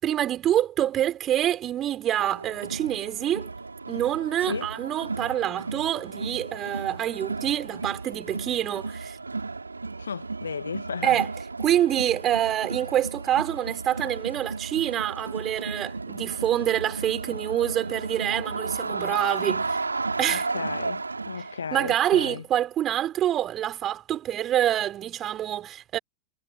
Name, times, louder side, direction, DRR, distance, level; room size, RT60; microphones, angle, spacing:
voice 1, 0.0-3.5 3.9-9.2 11.0-11.3 11.6-19.8 20.2-20.5 21.7-26.0, right 11 dB, 30° right, 4.8 m, -26 dB
Crowd, 2.2-21.6, right 3 dB, 80° right, 2.9 m, -34 dB
voice 2, 10.0-11.2 20.3-22.4, left 6 dB, 70° left, 2.1 m, -34 dB
figure-of-eight pair, 90°, 0 cm